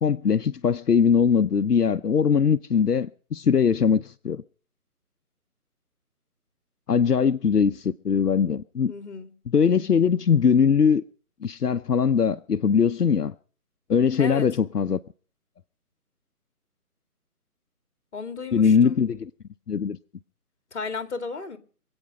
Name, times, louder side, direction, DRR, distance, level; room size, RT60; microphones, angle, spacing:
voice 1, 0.0-4.4 6.9-8.9 9.5-11.0 11.4-13.3 13.9-15.0 18.5-19.3 19.7-20.0, left 6 dB, 85° left, 0.8 m, -21 dB
voice 2, 8.9-9.3 14.2-14.5 18.1-19.0 20.7-21.6, left 4 dB, 45° left, 2.2 m, -34 dB
25.5 x 8.8 x 5.4 m
figure-of-eight pair, 155°, 46 cm